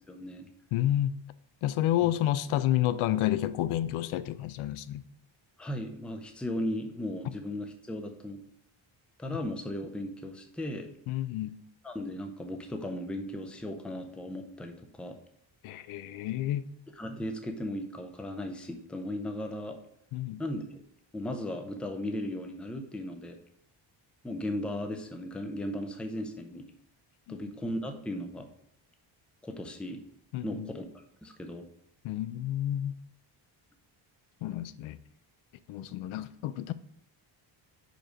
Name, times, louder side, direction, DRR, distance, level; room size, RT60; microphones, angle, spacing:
voice 1, 0.1-0.5 2.0-2.1 5.6-8.4 9.2-10.9 11.8-15.2 17.0-19.8 20.4-20.8 21.1-23.4 24.2-26.7 27.3-28.5 29.4-30.0 30.4-31.6, left 1 dB, ahead, 0.4 m, -36 dB
voice 2, 0.7-1.2 1.6-5.1 11.1-11.6 15.6-16.7 20.1-20.4 27.3-27.4 30.3-30.7 32.0-33.0 34.4-35.0 35.7-36.7, left 13 dB, 85° left, 0.5 m, -30 dB
5.2 x 4.7 x 5.0 m
cardioid pair, 160°, 48 cm